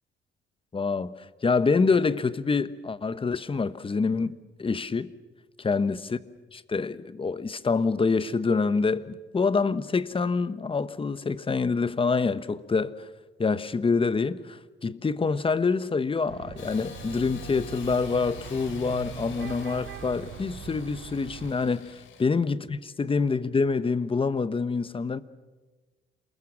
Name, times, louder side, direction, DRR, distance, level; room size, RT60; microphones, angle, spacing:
voice 1, 0.7-1.1 1.4-5.1 5.6-6.2 6.5-13.1 13.4-25.2, left 4 dB, 25° left, 1.1 m, -26 dB
sound 1, 16.3-21.5, right 8 dB, 85° right, 2.6 m, -41 dB
Engine starting / Sawing, 16.6-22.2, left 7 dB, 75° left, 3.1 m, -47 dB
28.0 x 21.0 x 7.4 m
cardioid pair, 90°, 20 cm